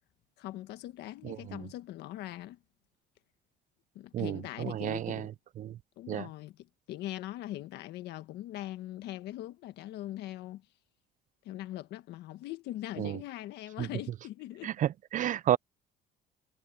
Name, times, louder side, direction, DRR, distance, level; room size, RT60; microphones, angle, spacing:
voice 1, 0.4-2.6 3.9-5.3 6.0-10.6 11.4-14.7, left 14 dB, 80° left, 1.5 m, -41 dB
voice 2, 1.2-1.6 4.1-5.3 5.6-5.8 6.1-6.3 13.0-13.2 13.8-13.9 14.6-15.6, right 11 dB, 50° right, 0.4 m, -31 dB
cardioid pair, 110°, 17 cm